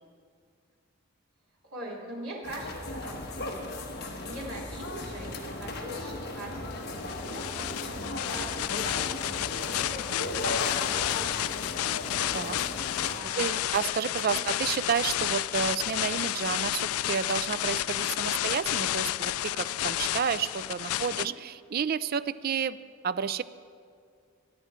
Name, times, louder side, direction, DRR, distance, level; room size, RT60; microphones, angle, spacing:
voice 1, 1.7-3.7 4.0-11.8 13.0-13.7 14.3-14.4 21.0-21.4, right 1 dB, 85° right, -4 dB, 3.5 m, -43 dB
sound 1, 2.4-13.2, left 1 dB, 45° left, 1.4 m, -36 dB
sound 2, 7.0-21.3, left 13 dB, 80° left, 0.3 m, -31 dB
voice 2, 13.4-22.8 23.0-23.4, right 7 dB, 45° right, 15 dB, 0.3 m, -30 dB
23.0 x 9.1 x 4.4 m, 2.2 s
head